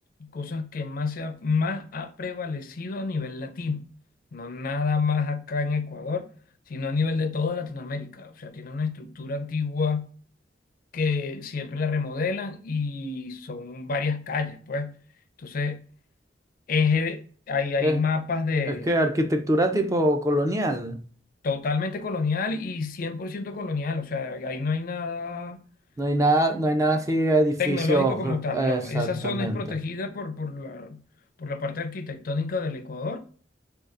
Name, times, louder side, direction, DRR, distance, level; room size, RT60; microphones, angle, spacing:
voice 1, 0.2-3.8 4.3-6.3 6.7-10.1 10.9-15.0 15.4-15.8 16.7-18.9 21.4-25.6 27.6-31.0 31.4-33.2, left 4 dB, 50° left, 0.4 m, -28 dB
voice 2, 18.7-21.0 26.0-29.8, right 1 dB, 20° right, 0.4 m, -24 dB
3.7 x 2.3 x 2.4 m
head